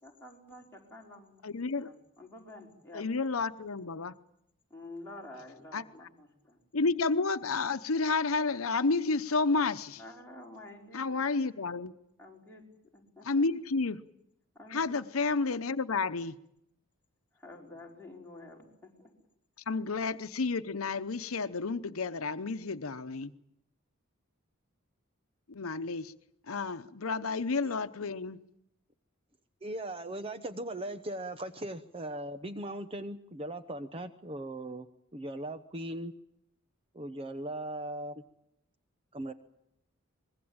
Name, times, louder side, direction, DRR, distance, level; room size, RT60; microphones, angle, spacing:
voice 1, 0.0-1.4 1.8-3.1 4.7-6.6 10.0-11.2 12.2-13.5 14.5-15.0 17.3-19.2, left 2 dB, 10° left, -2 dB, 5.0 m, -49 dB
voice 2, 1.4-1.9 2.9-4.1 5.7-5.8 6.7-10.0 10.9-11.9 13.3-14.0 14.7-16.3 19.7-23.3 25.5-26.1 26.5-28.4, left 4 dB, 85° left, 11 dB, 0.9 m, -31 dB
voice 3, 29.6-34.9 35.1-36.1 36.9-38.2 39.1-39.3, right 1 dB, 25° right, 10 dB, 0.9 m, -39 dB
24.5 x 21.5 x 8.8 m, 0.80 s
head